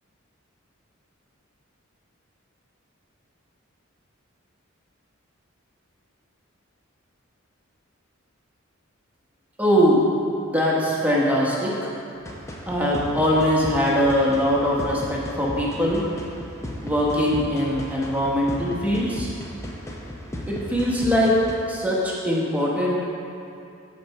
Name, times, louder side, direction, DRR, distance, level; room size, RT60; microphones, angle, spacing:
voice 1, 9.6-10.0 10.4-11.9 12.7-16.0 16.8-19.3 20.5-21.4 21.7-23.0, equal, 5° right, -5 dB, 1.0 m, -22 dB
sound 1, 12.3-21.5, left 1 dB, 15° left, 0.6 m, -35 dB
7.6 x 4.1 x 5.3 m, 2.7 s
head